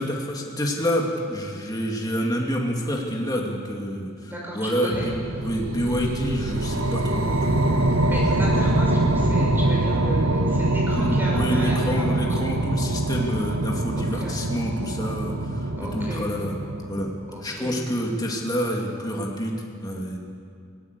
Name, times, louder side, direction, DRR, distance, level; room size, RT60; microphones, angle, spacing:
voice 1, 0.0-5.2 5.4-7.6 10.9-16.5 16.9-17.1 17.4-20.2, equal, 20° left, -1 dB, 2.5 m, -28 dB
voice 2, 4.2-5.1 7.9-12.2 14.0-14.4 15.8-16.3 17.3-17.8 18.2-18.3, equal, 10° right, -3 dB, 6.1 m, -33 dB
sound 1, 4.9-17.4, right 2 dB, 75° right, 1.4 m, -24 dB
20.0 x 18.5 x 8.3 m, 2.2 s
head